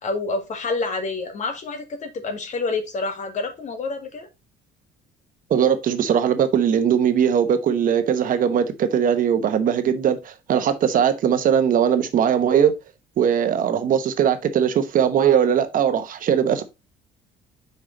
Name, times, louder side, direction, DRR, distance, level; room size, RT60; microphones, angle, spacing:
voice 1, 0.0-4.3, left 3 dB, 45° left, 1.7 m, -28 dB
voice 2, 5.5-12.7 13.2-16.6, right 8 dB, 55° right, 0.9 m, -20 dB
5.5 x 4.9 x 3.8 m
cardioid pair, 110°, 17 cm